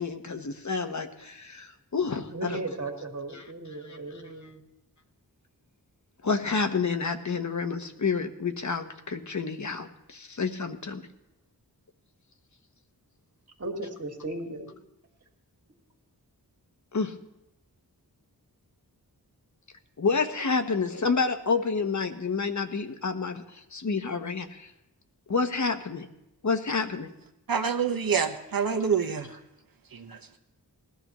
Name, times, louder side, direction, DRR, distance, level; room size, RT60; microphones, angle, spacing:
voice 1, 0.0-2.6 3.3-3.4 3.8-4.0 6.2-11.0 16.9-17.1 20.0-24.7 25.3-26.1 26.4-27.1, left 4 dB, 50° left, 1.0 m, -29 dB
voice 2, 2.3-4.6 13.6-14.7, right 2 dB, 40° right, 2.0 m, -36 dB
voice 3, 27.5-29.4 29.9-30.4, right 6 dB, 60° right, 1.1 m, -27 dB
19.5 x 13.5 x 3.0 m
wide cardioid pair, 80°, 38 cm